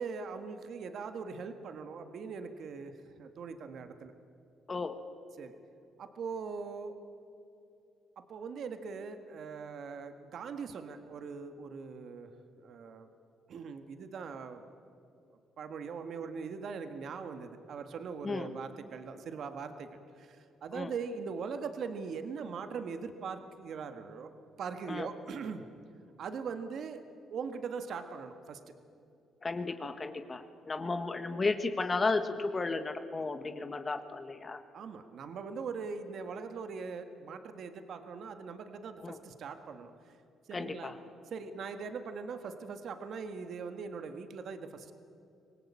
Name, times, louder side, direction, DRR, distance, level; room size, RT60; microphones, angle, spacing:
voice 1, 0.0-4.1 5.4-5.6 6.0-7.0 8.2-12.3 12.6-13.1 13.5-14.6 15.3-24.3 24.6-25.7 26.2-27.0 27.3-28.6 34.7-40.1 40.5-40.9 41.3-44.9, right 5 dB, 65° right, 8 dB, 1.6 m, -41 dB
voice 2, 29.4-34.6 39.0-39.2 40.5-41.0, left 3 dB, 30° left, 8 dB, 1.4 m, -34 dB
25.0 x 18.0 x 8.6 m, 2.6 s
cardioid pair, 90°, 0 cm